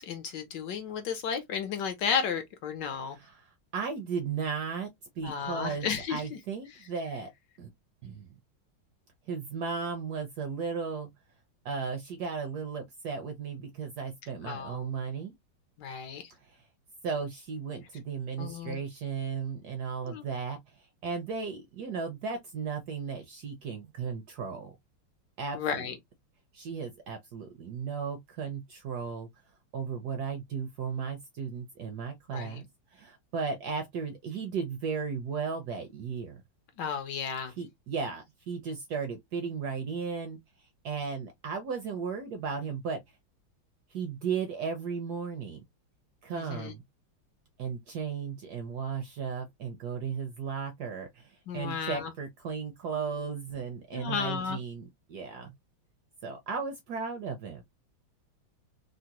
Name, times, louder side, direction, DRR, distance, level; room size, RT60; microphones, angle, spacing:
voice 1, 0.0-3.2 5.2-6.4 14.4-14.9 15.8-16.3 18.4-18.8 20.0-20.3 25.5-26.0 32.3-32.6 36.8-37.5 46.3-46.7 51.5-52.1 53.9-54.6, left 7 dB, 70° left, 1.1 m, -33 dB
voice 2, 3.0-4.9 5.2-7.3 7.6-7.7 8.0-8.3 9.3-11.1 11.6-15.3 16.4-16.6 17.0-24.7 25.4-25.9 26.5-29.3 29.7-32.6 32.9-36.4 37.6-43.0 43.9-45.6 46.2-46.8 47.6-55.5 56.2-57.6, right 5 dB, 70° right, 0.9 m, -35 dB
3.7 x 2.0 x 2.8 m
omnidirectional pair, 2.2 m